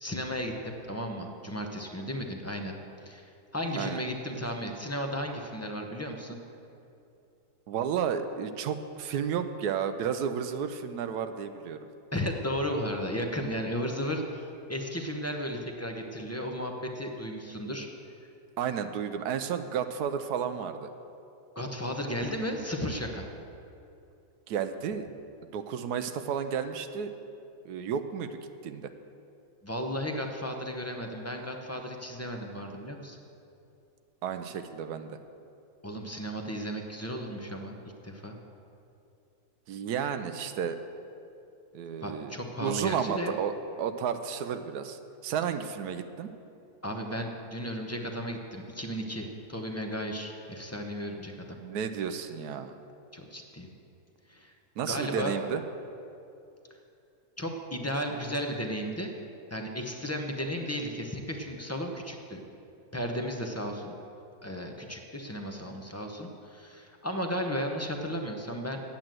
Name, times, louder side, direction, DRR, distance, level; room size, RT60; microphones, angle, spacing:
voice 1, 0.0-2.7 3.0-3.3 3.5-6.4 12.1-17.9 21.6-23.3 29.6-33.2 35.8-38.4 42.0-43.4 46.8-51.4 53.1-53.7 54.3-54.5 54.9-55.4 57.4-59.1 59.5-62.4 62.9-63.9 64.4-68.8, equal, 20° left, 3 dB, 0.4 m, -34 dB
voice 2, 7.7-11.8 18.6-20.9 24.5-25.1 25.5-27.1 27.6-28.9 34.2-35.2 39.7-40.8 41.7-42.3 42.6-43.5 43.8-46.3 51.6-52.7 54.8-55.6, right 7 dB, 85° right, 9 dB, 1.1 m, -32 dB
8.9 x 8.8 x 7.6 m, 2.7 s
omnidirectional pair, 1.7 m